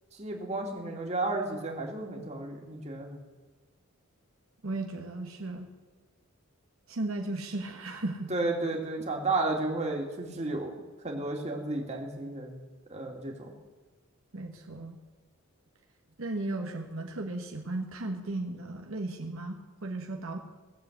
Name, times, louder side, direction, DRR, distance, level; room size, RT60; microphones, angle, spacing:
voice 1, 0.1-3.2 8.3-10.7 11.0-12.6 12.9-13.5, right 2 dB, 30° right, 0 dB, 2.4 m, -32 dB
voice 2, 4.6-5.7 6.9-8.3 14.3-15.0 16.2-20.4, right 2 dB, 70° right, 2 dB, 1.4 m, -35 dB
18.0 x 7.6 x 8.1 m, 1.3 s
head